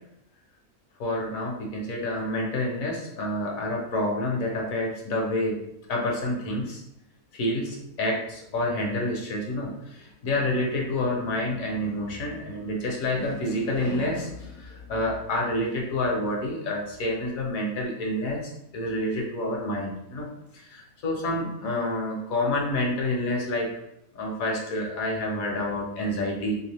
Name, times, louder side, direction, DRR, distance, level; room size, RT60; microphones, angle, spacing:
voice 1, 1.0-5.6 5.9-6.8 7.3-18.4 18.7-20.3 20.5-23.7 24.1-26.6, left 1 dB, 65° left, 0 dB, 1.3 m, -28 dB
3.2 x 3.0 x 3.3 m, 0.80 s
omnidirectional pair, 1.6 m